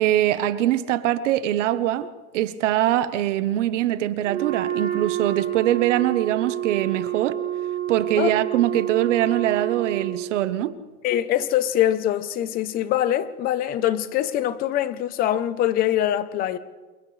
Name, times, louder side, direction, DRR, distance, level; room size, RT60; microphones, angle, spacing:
voice 1, 0.0-2.1 2.3-7.4 7.9-10.7, right 12 dB, 55° right, 1.2 m, -23 dB
Wind instrument woodwind instrument, 4.2-10.4, right 12 dB, 15° right, 2.7 m, -28 dB
voice 2, 11.0-16.6, left 12 dB, 20° left, 0.8 m, -23 dB
29.5 x 28.5 x 3.3 m
supercardioid pair, 165°, 43 cm